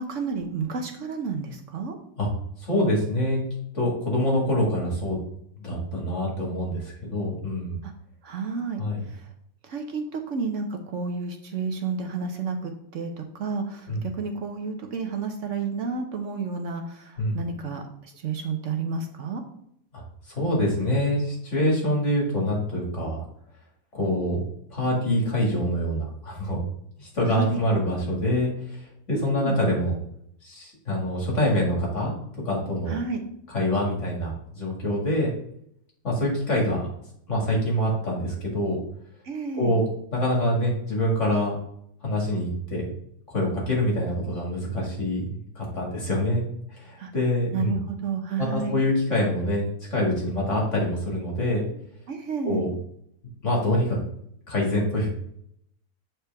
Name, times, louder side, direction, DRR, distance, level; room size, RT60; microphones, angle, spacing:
voice 1, 0.0-2.0 8.2-8.8 9.7-17.8 18.2-19.4 27.3-27.6 29.1-29.6 32.9-33.3 39.2-39.7 47.0-47.1 47.5-48.8 52.1-52.6, right 5 dB, 60° right, 4 dB, 1.1 m, -31 dB
voice 2, 2.6-3.4 3.7-5.2 5.6-7.8 8.8-9.0 13.9-14.1 17.2-17.4 19.9-20.0 20.4-23.2 23.9-24.4 24.7-26.6 27.0-28.5 29.1-29.9 30.4-32.1 32.4-32.9 33.5-35.3 36.0-36.9 37.3-38.8 39.5-39.8 40.1-41.6 42.0-42.9 43.3-45.3 45.6-46.5 46.7-47.8 48.4-51.6 52.4-52.7 53.4-54.0 54.5-55.1, left 1 dB, 55° left, -2 dB, 2.5 m, -25 dB
8.2 x 4.4 x 3.4 m, 0.72 s
omnidirectional pair, 1.5 m